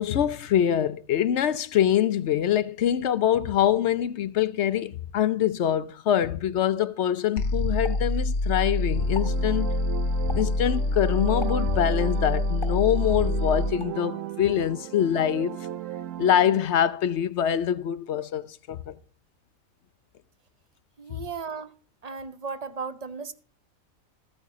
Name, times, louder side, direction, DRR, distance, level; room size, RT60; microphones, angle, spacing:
voice 1, 0.0-9.7 10.3-15.6 16.2-18.9 21.1-21.2, left 10 dB, 60° left, 0.8 m, -24 dB
sound 1, 7.4-13.8, left 2 dB, 85° left, 1.5 m, -26 dB
Explosion, 7.8-8.7 9.0-9.4 10.3-10.7 11.4-11.8 12.6-13.3 13.8-14.0, left 2 dB, 20° left, 1.5 m, -41 dB
sound 2, 8.7-16.7, right 13 dB, 70° right, 1.0 m, -36 dB
voice 2, 21.0-21.7 22.0-23.3, right 5 dB, 40° right, 0.6 m, -35 dB
14.5 x 8.8 x 3.7 m
omnidirectional pair, 1.5 m